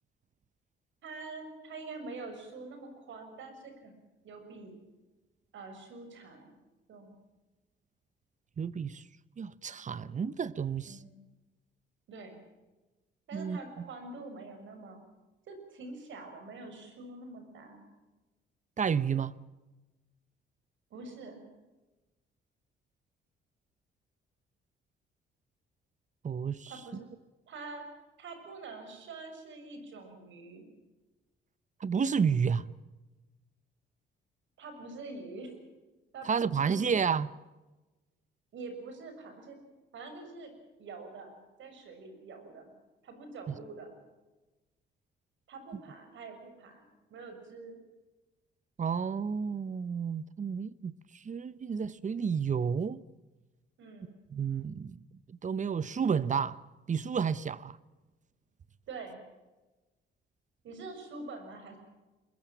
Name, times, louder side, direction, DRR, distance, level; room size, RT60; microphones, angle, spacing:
voice 1, 1.0-3.9 4.2-4.7 5.5-6.5 6.9-7.1 10.9-11.2 12.1-12.4 13.3-15.0 15.5-17.9 20.9-21.4 26.7-27.0 27.5-27.8 28.2-30.6 34.6-35.6 36.1-36.9 38.5-39.6 39.9-40.5 40.8-41.3 41.6-42.7 43.0-44.0 45.5-47.8 53.8-54.2 58.9-59.2 60.6-61.8, right 3 dB, 70° right, 6.7 m, -45 dB
voice 2, 8.6-9.0 9.4-11.0 13.3-13.6 18.8-19.3 26.2-26.7 31.8-32.7 36.3-37.3 43.5-43.6 48.8-53.0 54.3-55.0 55.3-56.6 56.9-57.8, right 6 dB, 40° right, 0.9 m, -31 dB
22.0 x 21.5 x 7.4 m
cardioid pair, 90°, 20 cm